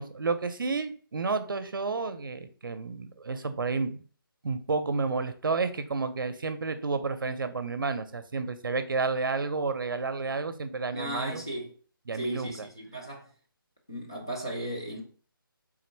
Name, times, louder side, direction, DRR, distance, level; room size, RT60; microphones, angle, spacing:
voice 1, 0.0-4.0 4.4-11.4 12.1-12.5, right 4 dB, 65° right, 0.6 m, -31 dB
voice 2, 10.9-11.7 12.1-13.3 13.9-15.0, right 1 dB, 10° left, 0.3 m, -36 dB
3.7 x 2.6 x 4.4 m
hypercardioid pair, 180°, 12 cm